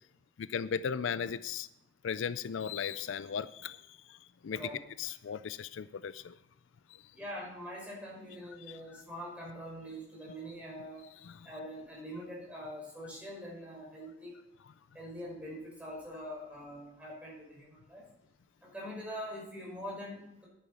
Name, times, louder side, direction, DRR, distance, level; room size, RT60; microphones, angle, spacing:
voice 1, 0.4-1.7 2.0-4.6 5.0-6.4 6.9-7.0 8.7-8.8 11.2-11.5, left 7 dB, 70° left, 15 dB, 0.4 m, -37 dB
voice 2, 7.1-11.1 11.4-14.3 14.9-18.1 18.6-20.5, equal, 5° right, -4 dB, 5.7 m, -43 dB
10.5 x 10.0 x 5.6 m, 0.85 s
head